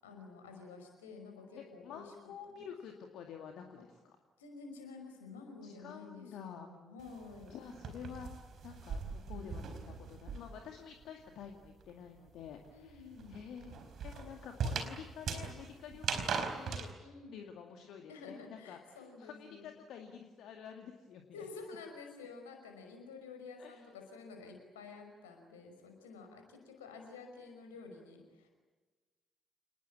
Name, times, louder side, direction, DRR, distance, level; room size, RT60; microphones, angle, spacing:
voice 1, 0.0-2.1 2.5-2.6 4.4-7.6 12.7-13.4 17.0-17.4 18.1-19.7 21.3-28.5, left 4 dB, 75° left, 4 dB, 5.5 m, -50 dB
voice 2, 1.6-4.2 5.6-6.7 7.5-8.3 8.6-16.9 17.3-21.4 23.6-23.9, left 7 dB, 60° left, 4 dB, 2.2 m, -49 dB
sound 1, 7.0-10.7 11.0-16.9, right 5 dB, 55° right, 4.4 m, -40 dB
28.5 x 20.5 x 8.6 m, 1.3 s
figure-of-eight pair, 45°, 0 cm